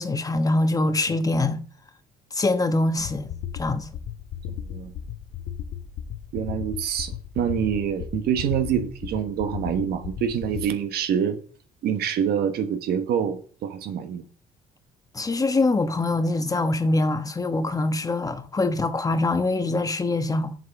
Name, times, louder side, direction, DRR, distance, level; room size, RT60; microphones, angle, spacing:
voice 1, 0.0-1.6 2.3-3.9 15.1-20.6, left 2 dB, 20° left, 1.1 m, -24 dB
sound 1, 3.0-10.7, left 9 dB, 80° left, 1.1 m, -35 dB
voice 2, 4.5-4.9 6.3-11.4 11.8-14.2, right 8 dB, 70° right, 1.3 m, -26 dB
7.7 x 5.9 x 6.6 m
cardioid pair, 110°, 17 cm